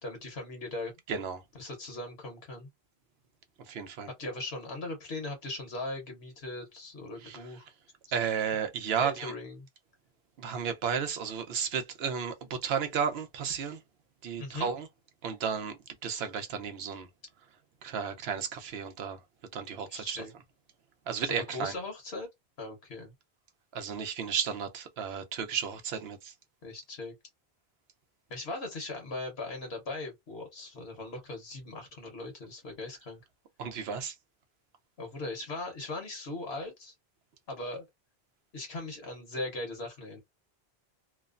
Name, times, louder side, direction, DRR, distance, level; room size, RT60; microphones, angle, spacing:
voice 1, 0.0-0.9 1.5-2.7 4.2-7.6 8.1-8.3 9.0-9.7 14.4-14.7 19.9-20.3 21.2-22.3 22.6-23.1 26.6-27.1 28.3-33.2 35.0-36.9 37.5-37.8 38.5-40.2, left 2 dB, 75° left, 1.3 m, -39 dB
voice 2, 1.1-1.4 3.7-4.1 7.2-7.4 8.1-9.3 10.4-13.8 14.2-14.9 15.2-15.8 16.0-17.1 17.8-19.2 19.5-20.2 21.1-21.7 23.7-26.3 33.6-34.1, right 7 dB, 75° right, 0.9 m, -33 dB
3.0 x 2.0 x 2.4 m
omnidirectional pair, 1.1 m